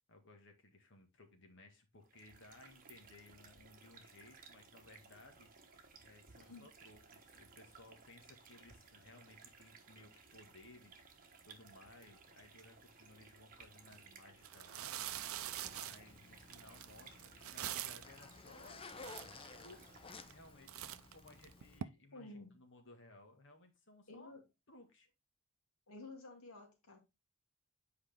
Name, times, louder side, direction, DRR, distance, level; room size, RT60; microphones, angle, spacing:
voice 1, 0.1-5.5 6.0-15.0 15.6-18.8 19.6-24.3 24.7-25.1, left 2 dB, 60° left, 5 dB, 1.7 m, -60 dB
sound 1, 2.0-20.6, right 5 dB, 40° right, 1.2 m, -60 dB
sound 2, 13.8-14.0 14.4-18.2 18.7-18.8 19.0-19.7 20.2-20.4 20.7-21.8, right 11 dB, 75° right, 0.5 m, -44 dB
Zipper (clothing), 14.9-21.8, left 4 dB, 25° left, 0.5 m, -56 dB
voice 2, 22.1-22.5 24.1-24.4 25.9-27.0, left 2 dB, 85° left, 2 dB, 2.2 m, -52 dB
8.1 x 4.7 x 3.5 m, 0.24 s
head